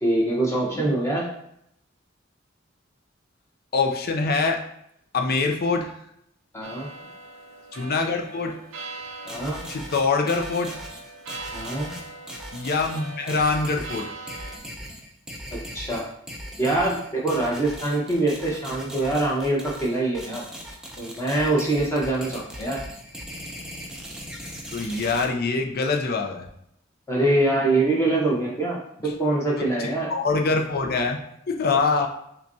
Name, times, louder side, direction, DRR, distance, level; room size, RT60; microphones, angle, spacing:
voice 1, 0.0-1.3 6.5-6.9 9.2-9.6 11.5-11.9 15.5-16.1 16.6-20.4 21.0-22.8 27.1-30.1, right 2 dB, 15° left, -4 dB, 1.0 m, -24 dB
voice 2, 3.7-4.6 5.1-5.9 7.7-8.6 9.7-10.7 12.5-14.0 24.7-26.5 29.6-31.2 31.5-32.1, left 4 dB, 50° left, 3 dB, 0.5 m, -24 dB
sound 1, 6.6-14.6, right 2 dB, 80° right, 0.7 m, -41 dB
sound 2, 9.3-25.2, equal, 5° right, 0.5 m, -39 dB
5.6 x 2.3 x 2.7 m, 0.75 s
head